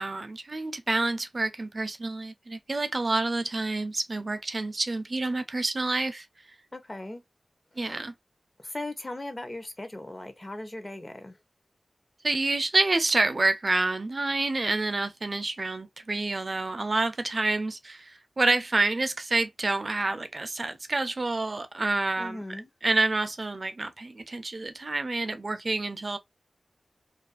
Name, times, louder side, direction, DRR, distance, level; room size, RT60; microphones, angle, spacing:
voice 1, 0.0-6.3 7.8-8.1 12.2-22.4 22.8-26.2, right 2 dB, 45° right, 0.4 m, -28 dB
voice 2, 6.7-7.2 7.8-8.0 8.6-11.4 22.2-22.7, left 1 dB, 30° left, 0.6 m, -38 dB
2.4 x 2.3 x 2.3 m
wide cardioid pair, 70°, 0 cm